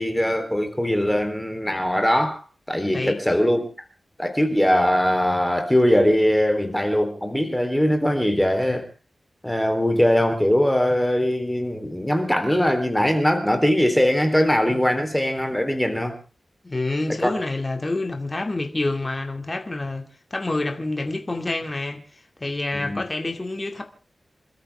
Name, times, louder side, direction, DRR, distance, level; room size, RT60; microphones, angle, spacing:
voice 1, 0.0-2.4 2.7-3.7 4.2-8.8 9.4-16.2 17.2-17.3 22.7-23.0, equal, 5° left, 3.6 m, -21 dB
voice 2, 16.6-20.0 20.3-22.0 22.4-23.8, left 2 dB, 25° left, 2.4 m, -27 dB
27.5 x 13.5 x 3.6 m
wide cardioid pair, 120°, 0 cm